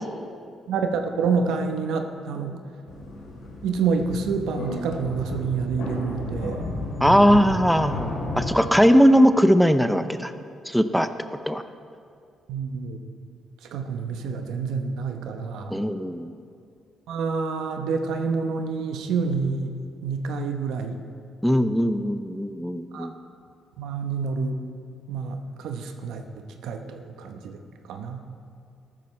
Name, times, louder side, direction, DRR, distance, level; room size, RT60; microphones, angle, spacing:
voice 1, 0.7-2.6 3.6-6.6 7.1-7.5 12.5-13.0 13.7-15.8 17.1-19.7 20.0-21.0 22.9-23.1 23.8-24.6 25.1-26.2 26.6-27.6 27.9-28.2, right 5 dB, 85° right, 5 dB, 0.9 m, -28 dB
sound 1, 2.9-8.5, left 2 dB, 85° left, 2.6 m, -33 dB
voice 2, 7.0-10.3 10.7-11.1 11.5-11.6 15.7-16.3 21.4-23.1, equal, ahead, 10 dB, 0.5 m, -19 dB
14.0 x 12.5 x 3.2 m, 2.4 s
cardioid pair, 90°, 0 cm